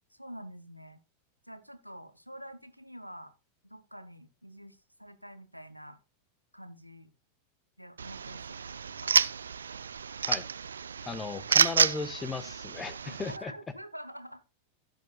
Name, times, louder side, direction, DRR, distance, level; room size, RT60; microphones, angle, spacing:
voice 1, 0.1-1.0 1.4-3.3 3.6-6.0 6.5-7.1 7.8-9.2 13.1-14.4, equal, 90° right, 10 dB, 1.3 m, -47 dB
sound 1, 8.0-13.4, right 6 dB, 70° right, 0.5 m, -29 dB
voice 2, 11.0-13.5, left 4 dB, 20° left, 14 dB, 1.4 m, -36 dB
16.0 x 7.1 x 2.4 m, 0.31 s
figure-of-eight pair, 90°, 0 cm